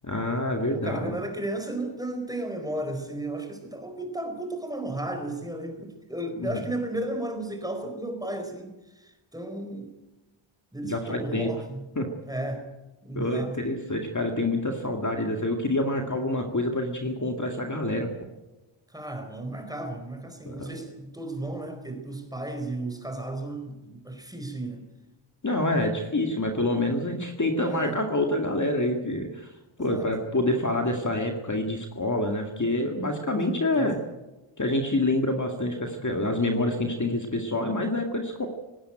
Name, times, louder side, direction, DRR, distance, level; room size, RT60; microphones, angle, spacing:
voice 1, 0.0-1.2 6.4-6.6 10.8-11.5 12.0-12.1 13.1-18.1 20.5-20.7 25.4-29.5 29.8-34.0 34.6-38.5, left 1 dB, 35° left, 3 dB, 2.1 m, -27 dB
voice 2, 0.7-9.9 10.7-11.9 12.3-12.7 13.0-13.8 18.9-24.8 27.7-28.0 29.8-30.1 33.5-33.9, right 1 dB, 5° right, 5 dB, 4.4 m, -34 dB
18.5 x 18.0 x 9.0 m, 1.0 s
wide cardioid pair, 90°, 50 cm